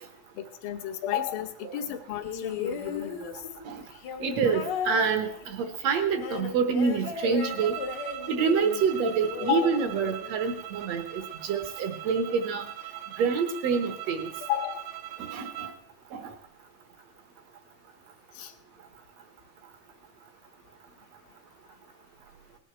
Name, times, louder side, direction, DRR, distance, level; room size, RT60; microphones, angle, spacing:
voice 1, 0.4-3.4 9.5-9.8 14.5-14.9 18.4-18.5, left 12 dB, 80° left, 6 dB, 2.7 m, -32 dB
sound 1, 2.2-10.6 11.6-11.7, left 6 dB, 60° left, 1.1 m, -36 dB
voice 2, 4.2-7.8 8.3-12.6 13.2-14.3 15.2-15.7 16.2-16.3, right 5 dB, 65° right, 9 dB, 1.8 m, -27 dB
sound 2, 7.4-15.8, right 12 dB, 90° right, 2.7 m, -40 dB
18.5 x 9.8 x 4.5 m, 0.67 s
omnidirectional pair, 4.1 m